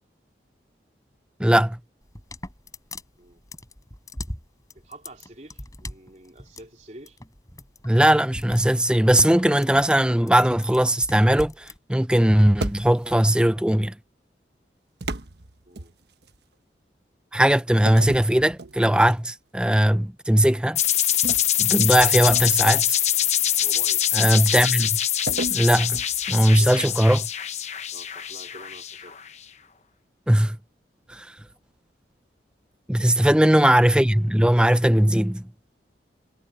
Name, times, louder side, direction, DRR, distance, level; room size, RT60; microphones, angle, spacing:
voice 1, 1.4-1.8 7.8-13.9 17.3-20.8 21.6-23.0 24.1-25.0 25.5-26.0 26.3-27.2 30.3-30.6 31.1-31.3 32.9-35.5, right 1 dB, 5° right, 0.7 m, -19 dB
sound 1, 2.0-11.8, left 1 dB, 20° left, 5.3 m, -39 dB
voice 2, 4.7-7.2 15.7-15.9 23.6-24.2 26.6-26.9 27.9-29.2 33.3-33.7, right 1 dB, 40° right, 3.5 m, -46 dB
sound 2, 12.6-13.3 15.0-16.4 17.9-19.2 19.7-19.9 21.2-22.7 25.3-26.9, right 2 dB, 70° right, 1.2 m, -34 dB
sound 3, 20.7-29.3, left 11 dB, 40° left, 1.0 m, -24 dB
head